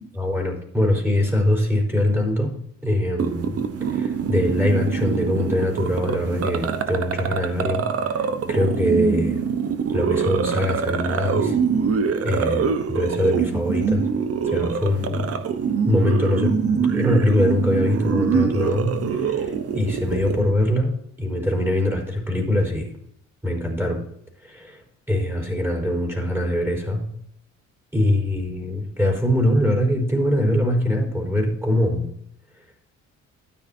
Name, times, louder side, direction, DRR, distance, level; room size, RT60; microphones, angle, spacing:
voice 1, 0.2-2.5 2.8-9.5 9.9-11.6 12.2-14.1 14.4-15.3 15.9-22.9 23.4-24.0 24.4-27.0 27.9-32.1 32.6-32.7, left 1 dB, 5° right, -1 dB, 4.5 m, -23 dB
sound 1, 3.2-20.4, right 6 dB, 50° right, 1.0 m, -24 dB
12.5 x 9.8 x 2.8 m, 0.68 s
cardioid pair, 90°, 30 cm